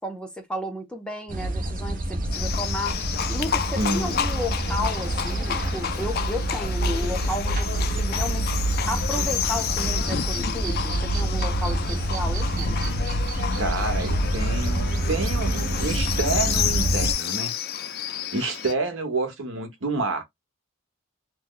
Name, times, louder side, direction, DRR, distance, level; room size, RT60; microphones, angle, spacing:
voice 1, 0.0-8.6 8.9-12.9, left 1 dB, 5° left, 0.6 m, -33 dB
sound 1, 1.3-17.1, right 1 dB, 40° right, 0.7 m, -27 dB
Livestock farm animals working animals, 2.3-18.7, left 9 dB, 50° left, 0.4 m, -30 dB
voice 2, 3.8-4.2 13.6-17.5 18.3-20.2, right 3 dB, 70° right, 1.0 m, -28 dB
3.1 x 2.0 x 3.7 m
head